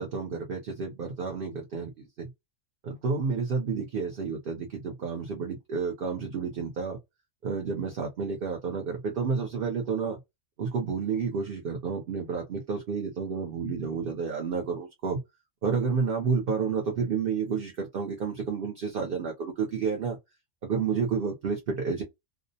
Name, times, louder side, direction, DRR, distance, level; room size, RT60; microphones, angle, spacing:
voice 1, 0.0-2.3 2.8-7.0 7.4-10.2 10.6-15.2 15.6-20.2 20.6-22.0, right 5 dB, 55° right, 0.8 m, -30 dB
2.4 x 2.0 x 2.6 m
omnidirectional pair, 1.2 m